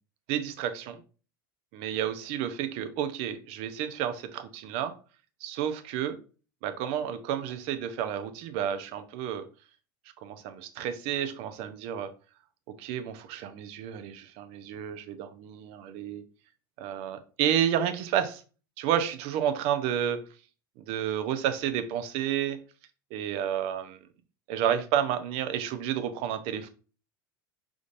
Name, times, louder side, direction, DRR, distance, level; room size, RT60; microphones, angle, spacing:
voice 1, 0.3-1.0 1.7-4.9 5.4-6.2 6.6-9.5 10.2-12.1 12.8-16.2 16.8-18.4 18.8-20.2 20.8-22.6 23.1-24.0 24.5-26.7, right 9 dB, 55° right, 10 dB, 0.7 m, -30 dB
5.3 x 3.7 x 2.5 m, 0.36 s
hypercardioid pair, 85°, 12 cm